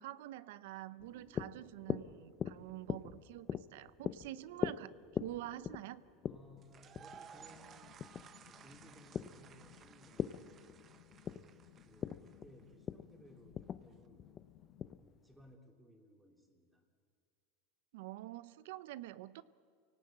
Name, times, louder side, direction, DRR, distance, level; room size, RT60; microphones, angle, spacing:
voice 1, 0.0-6.0 17.9-19.4, right 15 dB, 70° right, 16 dB, 0.8 m, -47 dB
sound 1, 1.0-15.5, left 8 dB, 25° left, 0.6 m, -43 dB
voice 2, 1.1-1.6 2.5-3.0 4.1-4.5 6.2-10.6 11.2-14.4 15.0-16.9, equal, 5° right, 2 dB, 3.0 m, -62 dB
sound 2, 6.6-12.6, right 7 dB, 25° right, 1.0 m, -58 dB
sound 3, 7.3-14.9, left 14 dB, 55° left, 1.2 m, -62 dB
28.5 x 18.0 x 8.8 m, 2.2 s
supercardioid pair, 150°, 0 cm